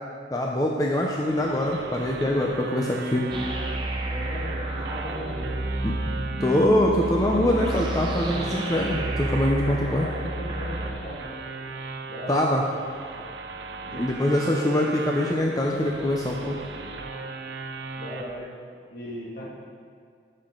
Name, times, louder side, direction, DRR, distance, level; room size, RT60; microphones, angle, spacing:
voice 1, 0.3-3.3 5.8-6.0 6.4-10.1 12.3-12.7 13.9-16.6, left 1 dB, 20° left, -1 dB, 0.6 m, -24 dB
sound 1, 0.9-18.3, right 3 dB, 75° right, 0.8 m, -38 dB
sound 2, 3.3-10.9, right 1 dB, 25° right, 0.9 m, -30 dB
voice 2, 4.0-5.5 9.6-11.3 12.1-12.6 13.9-14.4 18.0-18.5 18.9-19.4, left 1 dB, 60° left, -5 dB, 2.3 m, -37 dB
15.0 x 6.5 x 3.9 m, 2.2 s
head